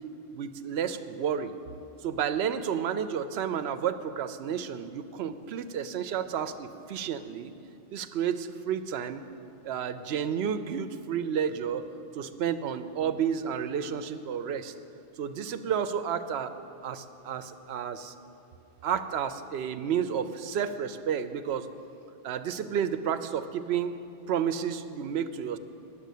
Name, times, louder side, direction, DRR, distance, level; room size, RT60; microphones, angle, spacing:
voice 1, 0.3-1.5 2.0-7.5 7.9-9.2 9.6-11.8 12.1-14.7 15.2-16.5 16.8-18.1 18.8-21.7 22.2-23.9 24.3-25.6, right 8 dB, 70° right, 11 dB, 0.8 m, -31 dB
10.5 x 7.3 x 8.3 m, 2.8 s
omnidirectional pair, 1.2 m